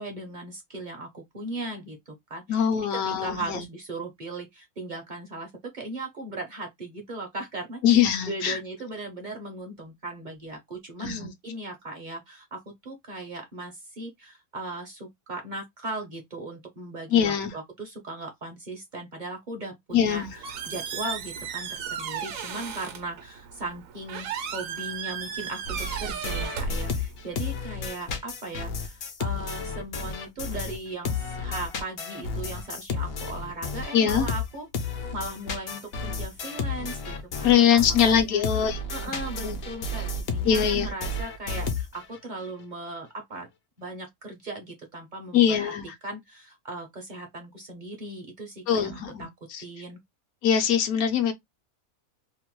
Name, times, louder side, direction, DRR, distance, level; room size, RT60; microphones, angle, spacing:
voice 1, 0.0-38.4 38.9-43.5 43.8-45.7 46.0-49.3 49.6-50.0, right 2 dB, 50° right, 0.6 m, -38 dB
voice 2, 2.5-3.6 7.8-8.6 11.0-11.3 17.1-17.5 19.9-20.3 33.9-34.3 37.4-38.8 39.1-39.2 39.4-39.6 40.4-40.9 45.3-45.8 48.7-49.6 50.4-51.3, left 8 dB, 75° left, 1.0 m, -22 dB
Squeak, 19.9-27.4, right 6 dB, 70° right, 0.9 m, -35 dB
sound 1, 25.6-30.8 31.0-42.2, left 3 dB, 60° left, 0.6 m, -32 dB
2.9 x 2.1 x 2.9 m
omnidirectional pair, 1.6 m